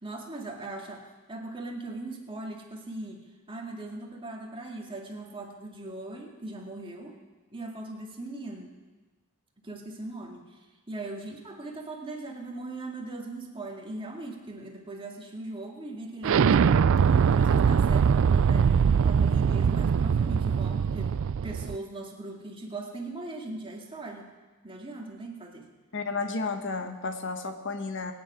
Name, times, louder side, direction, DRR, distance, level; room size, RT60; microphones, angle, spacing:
voice 1, 0.0-7.2 7.5-8.7 9.6-10.6 10.9-16.9 17.3-21.1 21.4-24.3 24.6-25.7, right 2 dB, 25° right, 0 dB, 2.0 m, -39 dB
Explosion, 16.2-21.8, right 6 dB, 60° right, 0.4 m, -22 dB
voice 2, 25.9-28.1, left 4 dB, 60° left, 6 dB, 1.2 m, -32 dB
23.0 x 9.6 x 5.0 m, 1.2 s
head